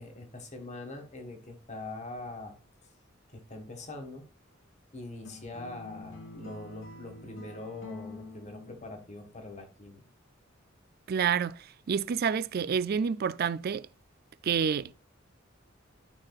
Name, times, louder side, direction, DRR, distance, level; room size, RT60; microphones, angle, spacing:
voice 1, 0.0-2.6 3.3-4.3 4.9-10.0, left 2 dB, 35° left, 1.7 m, -43 dB
sound 1, 5.3-9.4, left 2 dB, 70° left, 2.6 m, -47 dB
voice 2, 11.1-11.6 11.9-13.9 14.4-14.9, right 7 dB, 50° right, 0.4 m, -28 dB
11.5 x 5.7 x 2.4 m
head